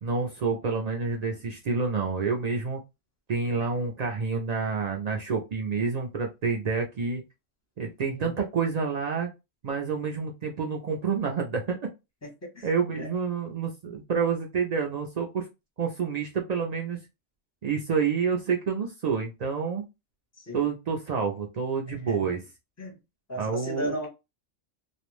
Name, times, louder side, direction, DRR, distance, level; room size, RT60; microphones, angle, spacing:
voice 1, 0.0-2.8 3.3-7.2 7.8-9.3 9.6-11.8 12.6-15.5 15.8-17.0 17.6-19.8 20.5-22.4 23.4-23.9, right 5 dB, 65° right, 0.4 m, -28 dB
voice 2, 12.2-13.1 20.4-20.7 21.9-22.3 22.8-23.0 23.3-24.1, left 1 dB, 20° left, 0.5 m, -36 dB
2.4 x 2.0 x 3.0 m
omnidirectional pair, 1.3 m